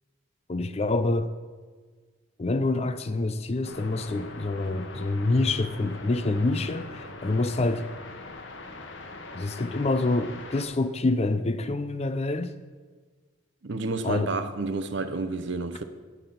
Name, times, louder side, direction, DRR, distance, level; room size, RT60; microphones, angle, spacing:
voice 1, 0.5-1.3 2.4-7.9 9.3-12.5 14.0-14.3, left 2 dB, 30° left, 0.4 m, -26 dB
sound 1, 3.6-10.6, left 2 dB, 65° left, 1.1 m, -42 dB
voice 2, 13.6-15.8, right 3 dB, 60° right, 0.7 m, -30 dB
9.6 x 5.8 x 6.9 m
head